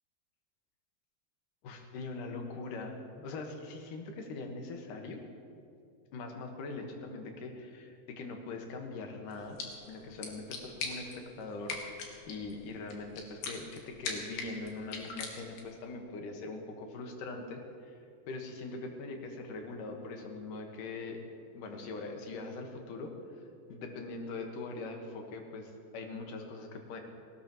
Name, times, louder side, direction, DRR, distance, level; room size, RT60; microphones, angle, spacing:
voice 1, 1.6-5.2 6.1-9.6 9.9-17.9 18.3-21.2 21.5-23.1 23.7-27.0, left 3 dB, 70° left, 3 dB, 2.8 m, -42 dB
sound 1, 9.3-15.8, left 4 dB, 90° left, 3.5 m, -43 dB
19.5 x 18.5 x 3.0 m, 2.5 s
omnidirectional pair, 4.1 m